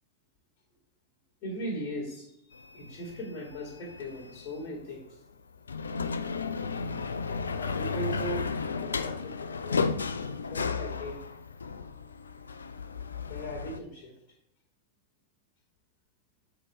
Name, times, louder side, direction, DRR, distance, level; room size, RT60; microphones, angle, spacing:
voice 1, 1.4-2.3 2.7-5.2 7.3-9.9 10.3-11.2 13.3-14.1, right 1 dB, 40° left, -3 dB, 2.3 m, -39 dB
sound 1, 2.5-4.6 5.6-13.8, left 5 dB, 75° left, 0.4 m, -34 dB
7.5 x 4.9 x 3.2 m, 0.82 s
figure-of-eight pair, 90°, 0 cm